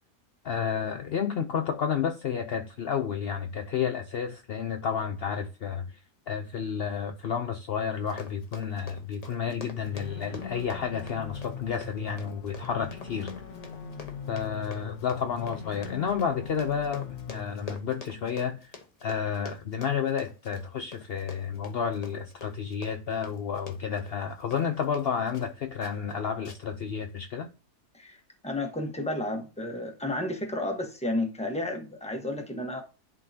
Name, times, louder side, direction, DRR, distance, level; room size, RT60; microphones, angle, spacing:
voice 1, 0.4-6.0 6.3-13.3 14.3-18.7 19.0-27.5, left 7 dB, 70° left, 0.5 m, -31 dB
Run, 7.9-25.5 25.8-26.1 26.4-26.8 27.2-27.3, left 4 dB, 30° left, 0.8 m, -47 dB
sound 1, 9.8-17.7, left 6 dB, 55° left, 1.1 m, -41 dB
voice 2, 28.4-32.8, left 1 dB, 5° left, 1.0 m, -32 dB
11.0 x 3.8 x 2.8 m
omnidirectional pair, 1.7 m